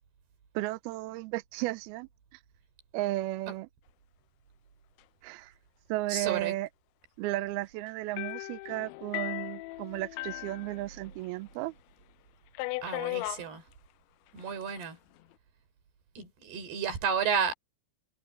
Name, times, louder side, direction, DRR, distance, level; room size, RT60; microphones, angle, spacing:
voice 1, 0.5-2.1 2.9-3.7 5.2-5.5 5.9-6.7 7.2-11.7, right 17 dB, 85° right, 2.2 m, -34 dB
voice 2, 6.1-6.5 12.8-13.6 14.3-15.0 16.2-17.5, right 7 dB, 60° right, 6.0 m, -32 dB
sound 1, 8.2-11.4 11.7-11.8 12.6-13.5 14.4-14.8, left 22 dB, 85° left, 2.9 m, -37 dB
omnidirectional pair, 5.3 m